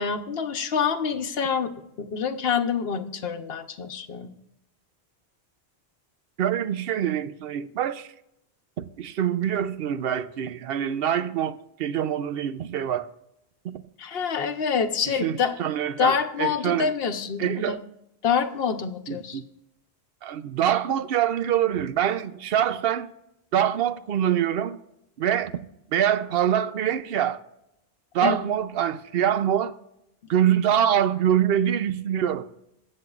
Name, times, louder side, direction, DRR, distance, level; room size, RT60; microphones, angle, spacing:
voice 1, 0.0-1.7 2.0-4.3 14.0-15.6 16.0-17.8 18.2-19.4 28.2-28.5, left 6 dB, 70° left, 1.1 m, -26 dB
voice 2, 6.4-8.1 8.8-13.1 13.6-13.8 15.1-16.9 17.4-17.8 19.1-19.5 20.2-23.1 23.5-24.8 25.2-25.5 25.9-27.4 28.1-29.8 30.3-32.5, right 10 dB, 70° right, 0.8 m, -25 dB
21.5 x 7.6 x 2.4 m
omnidirectional pair, 1.1 m